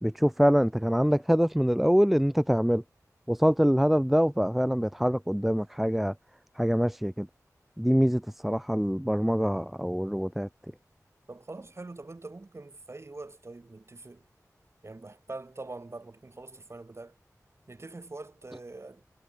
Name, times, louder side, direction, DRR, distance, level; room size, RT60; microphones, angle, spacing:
voice 1, 0.0-2.8 3.3-6.1 6.6-7.3 7.8-10.5, equal, 5° right, 0.7 m, -24 dB
voice 2, 11.3-14.3 14.8-17.2 17.7-19.0, right 2 dB, 45° right, 4.3 m, -43 dB
wide cardioid pair, 85°, 6 cm